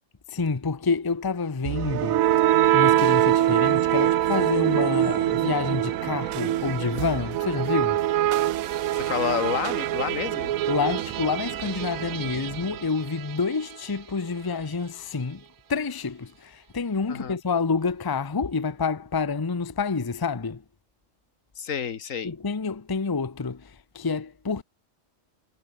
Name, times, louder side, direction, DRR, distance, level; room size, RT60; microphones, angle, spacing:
voice 1, 0.3-8.0 10.7-15.4 15.7-20.6 22.2-24.6, left 4 dB, 20° left, 0.7 m, -28 dB
sound 1, 1.6-13.5, right 13 dB, 85° right, 1.1 m, -24 dB
voice 2, 8.9-10.5 17.1-17.4 21.6-22.3, left 7 dB, 75° left, 1.7 m, -29 dB
omnidirectional pair, 1.4 m